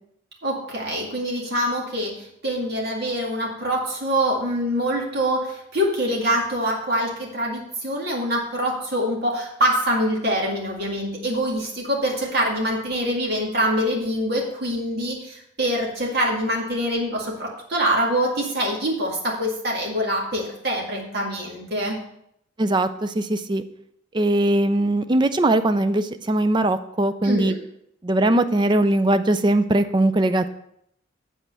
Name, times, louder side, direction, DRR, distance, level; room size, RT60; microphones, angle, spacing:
voice 1, 0.4-22.0 27.2-27.5, equal, 50° right, -1 dB, 2.1 m, -25 dB
voice 2, 22.6-23.6 24.1-27.5 28.0-30.5, right 1 dB, 20° right, 11 dB, 0.4 m, -20 dB
8.2 x 4.3 x 6.7 m, 0.73 s
head